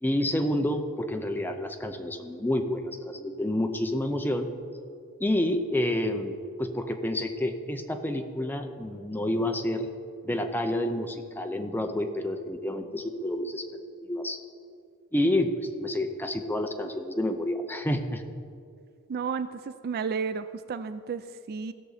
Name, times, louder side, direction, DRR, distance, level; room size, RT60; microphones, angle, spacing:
voice 1, 0.0-4.5 5.2-9.9 10.2-13.7 14.0-14.4 15.1-18.2, left 1 dB, 10° left, 5 dB, 0.6 m, -29 dB
voice 2, 19.1-21.7, right 5 dB, 45° right, 12 dB, 0.3 m, -32 dB
16.5 x 6.7 x 4.1 m, 2.3 s
head